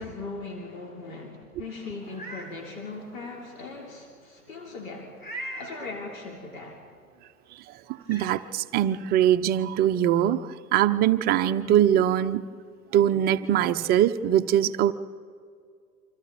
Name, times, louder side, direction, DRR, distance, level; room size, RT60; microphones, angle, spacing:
voice 1, 0.0-5.2 5.6-6.8, left 3 dB, 65° left, -1 dB, 3.8 m, -39 dB
Meow, 2.0-2.5 3.0-3.1 5.2-5.8 7.4-7.5 8.0-8.3, right 1 dB, 20° left, 5.1 m, -38 dB
voice 2, 7.9-12.4 12.9-14.9, right 11 dB, 20° right, 9 dB, 0.6 m, -22 dB
29.0 x 25.5 x 4.2 m, 2.2 s
figure-of-eight pair, 100°, 44 cm